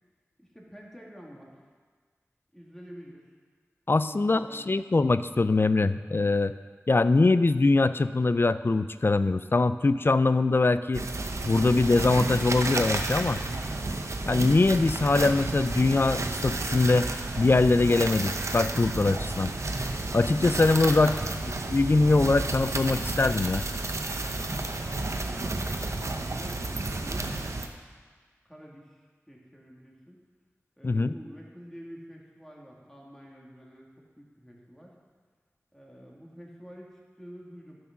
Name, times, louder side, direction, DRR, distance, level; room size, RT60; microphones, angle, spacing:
voice 1, 0.4-1.5 2.5-3.3 4.1-4.6 21.0-21.3 25.0-27.3 28.4-30.2 30.8-33.9 34.2-35.0 35.7-37.8, equal, 5° left, -3 dB, 2.3 m, -48 dB
voice 2, 3.9-6.5 6.9-11.0 11.5-13.4 14.3-17.1 17.4-19.5 20.1-21.1 21.7-23.6 30.8-31.1, left 3 dB, 45° left, 13 dB, 0.4 m, -23 dB
sound 1, 10.9-27.7, right 2 dB, 70° right, 0.7 m, -31 dB
11.0 x 6.3 x 5.9 m, 1.5 s
wide cardioid pair, 50°, 5 cm